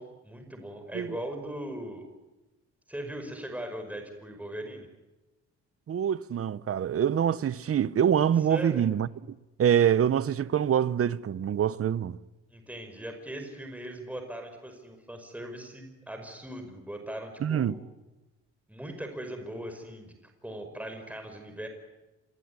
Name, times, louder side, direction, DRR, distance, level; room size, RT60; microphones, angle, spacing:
voice 1, 0.0-2.1 2.9-4.9 8.5-8.8 12.5-17.8 18.7-20.2 20.4-21.7, right 1 dB, 5° right, 5.5 m, -39 dB
voice 2, 5.9-9.1 9.6-12.2 17.4-17.7, right 9 dB, 50° right, 1.0 m, -25 dB
27.0 x 22.5 x 9.8 m
cardioid pair, 90°, 30 cm